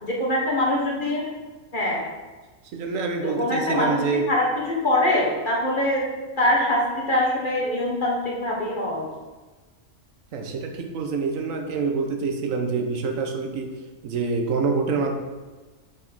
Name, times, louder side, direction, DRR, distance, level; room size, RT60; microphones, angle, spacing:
voice 1, 0.0-1.3 1.7-2.1 3.2-4.0 4.3-6.0 6.4-9.0, left 1 dB, 40° left, -3 dB, 1.5 m, -23 dB
voice 2, 2.7-4.3 10.3-13.8 14.0-15.2, right 4 dB, 85° right, 4 dB, 1.2 m, -26 dB
5.0 x 4.8 x 5.3 m, 1.3 s
omnidirectional pair, 1.4 m